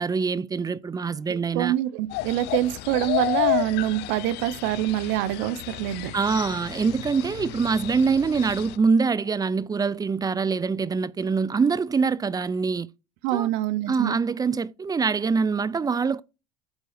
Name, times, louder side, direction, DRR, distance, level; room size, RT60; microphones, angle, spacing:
voice 1, 0.0-1.7 6.1-12.9 13.3-13.5 13.9-16.2, right 5 dB, 20° right, 0.5 m, -24 dB
voice 2, 1.3-6.1 13.2-14.1, right 14 dB, 75° right, 0.8 m, -25 dB
sound 1, 2.1-8.8, left 18 dB, 65° left, 0.4 m, -31 dB
8.2 x 3.7 x 4.9 m
supercardioid pair, 90°, 19 cm